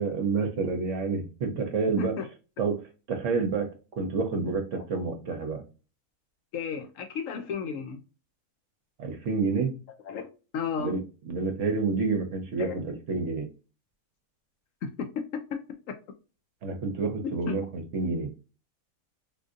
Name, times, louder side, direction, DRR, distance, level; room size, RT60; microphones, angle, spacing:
voice 1, 0.0-2.1 2.6-2.8 3.1-3.7 4.0-5.6 9.0-9.7 10.8-13.5 16.6-18.3, right 4 dB, 60° right, 1.0 m, -29 dB
voice 2, 6.5-8.0 10.0-10.3 10.5-10.9 12.6-12.7 17.5-17.6, left 6 dB, 70° left, 0.9 m, -33 dB
3.6 x 2.6 x 2.5 m
omnidirectional pair, 1.6 m